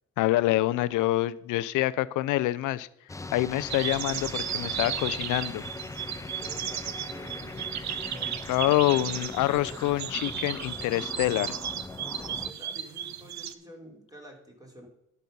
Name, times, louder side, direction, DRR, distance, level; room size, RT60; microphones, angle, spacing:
voice 1, 0.2-2.9 3.3-5.6 8.5-11.6, left 16 dB, 85° left, 17 dB, 0.5 m, -26 dB
sound 1, 3.1-12.5, left 3 dB, 10° left, 0.5 m, -40 dB
sound 2, 3.7-13.5, right 10 dB, 65° right, 0.7 m, -35 dB
voice 2, 6.4-8.4 12.0-14.9, equal, 10° right, 1 dB, 3.2 m, -49 dB
11.5 x 5.6 x 5.4 m, 0.86 s
cardioid pair, 90°, 30 cm